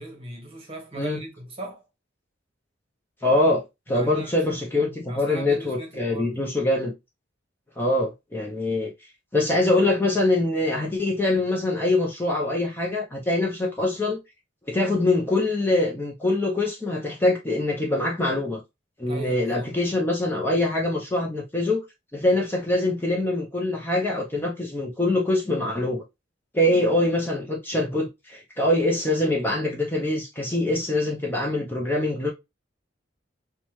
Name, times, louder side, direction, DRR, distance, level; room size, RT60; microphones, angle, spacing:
voice 1, 0.0-1.8 3.9-4.4 4.7-6.5 19.0-19.7, right 2 dB, 30° right, 1.0 m, -39 dB
voice 2, 3.2-6.9 7.8-8.9 9.3-14.2 14.7-18.6 19.0-21.8 22.1-26.0 26.5-32.3, left 2 dB, 10° left, 0.5 m, -24 dB
4.7 x 2.2 x 3.0 m
head